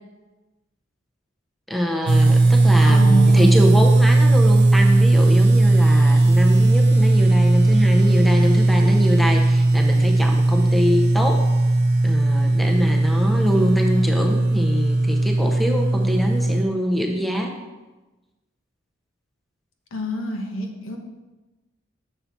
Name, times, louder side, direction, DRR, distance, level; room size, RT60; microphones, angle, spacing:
voice 1, 1.7-11.5 12.0-17.5, equal, ahead, 1 dB, 0.7 m, -24 dB
sound 1, 2.1-16.6, right 2 dB, 55° right, 0.5 m, -17 dB
voice 2, 2.8-3.5 19.9-21.0, right 2 dB, 85° left, 3 dB, 1.1 m, -26 dB
6.9 x 5.7 x 4.4 m, 1.1 s
head